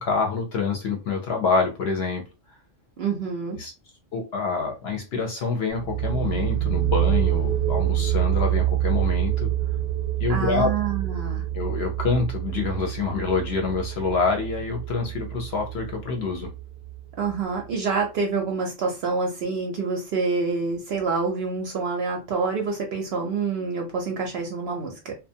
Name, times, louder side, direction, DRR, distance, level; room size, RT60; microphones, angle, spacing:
voice 1, 0.0-2.2 3.5-3.7 4.1-9.5 10.2-10.7 11.5-16.5, left 4 dB, 60° left, 0.8 m, -26 dB
voice 2, 3.0-3.6 10.3-11.4 17.2-25.2, right 4 dB, 60° right, 0.7 m, -27 dB
sound 1, 5.7-17.2, right 12 dB, 85° right, 1.0 m, -26 dB
2.5 x 2.2 x 2.6 m
omnidirectional pair, 1.4 m